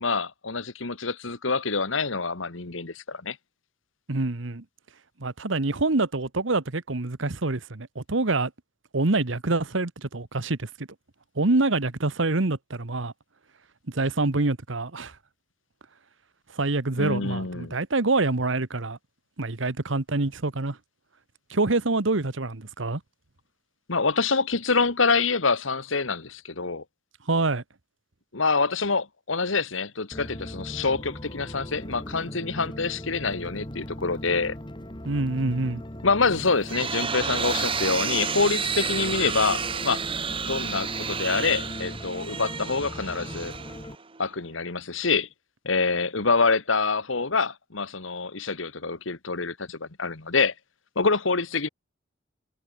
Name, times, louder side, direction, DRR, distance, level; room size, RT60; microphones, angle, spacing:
voice 1, 0.0-3.4 17.0-17.7 23.9-26.8 28.3-34.6 36.0-40.0 40.5-43.5 44.2-45.3 45.7-50.5 51.0-51.7, left 4 dB, 80° left, 1.7 m, -26 dB
voice 2, 4.1-4.6 5.2-8.5 8.9-10.9 11.3-13.1 13.9-15.1 16.5-19.0 19.4-20.8 21.5-23.0 27.3-27.6 35.0-35.8, right 2 dB, 70° right, 1.3 m, -26 dB
sound 1, 30.1-44.0, equal, 25° left, 2.7 m, -39 dB
sound 2, 36.3-44.2, right 6 dB, 25° right, 0.9 m, -31 dB
head